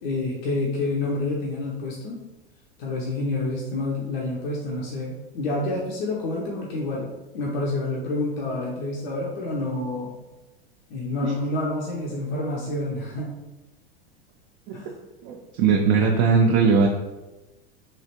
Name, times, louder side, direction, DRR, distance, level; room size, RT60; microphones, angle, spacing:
voice 1, 0.0-2.2 2.8-7.1 7.3-10.1 10.9-13.3 14.7-14.9, left 2 dB, 65° left, -2 dB, 0.7 m, -28 dB
voice 2, 15.2-16.9, right 5 dB, 45° right, 1 dB, 0.4 m, -19 dB
3.2 x 2.4 x 2.9 m, 1.1 s
hypercardioid pair, 95°, 31 cm